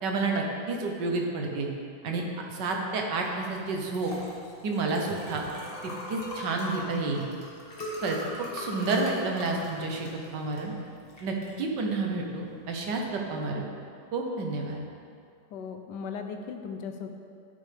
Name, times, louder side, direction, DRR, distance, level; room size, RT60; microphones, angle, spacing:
voice 1, 0.0-1.7 2.0-2.2 2.5-4.1 4.6-5.4 5.8-7.2 8.0-10.7 11.2-13.6 14.1-14.8, right 3 dB, 70° right, 1 dB, 1.6 m, -30 dB
Liquid, 3.2-13.4, left 1 dB, 35° left, 1.6 m, -41 dB
voice 2, 15.5-17.1, left 6 dB, 75° left, 6 dB, 1.3 m, -37 dB
12.0 x 6.4 x 3.4 m, 2.4 s
omnidirectional pair, 2.0 m